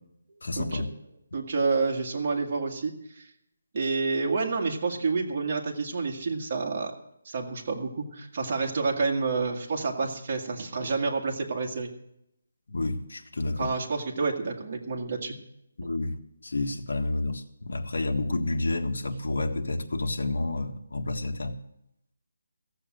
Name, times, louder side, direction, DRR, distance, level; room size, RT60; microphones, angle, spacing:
voice 1, 0.4-0.9 12.7-13.7 15.8-16.2 16.4-21.6, left 2 dB, 75° left, 1.5 m, -30 dB
voice 2, 1.3-2.9 3.7-6.9 7.3-11.9 13.6-15.4, right 4 dB, 35° right, 1.9 m, -29 dB
15.5 x 7.3 x 7.7 m
hypercardioid pair, 170°, 0 cm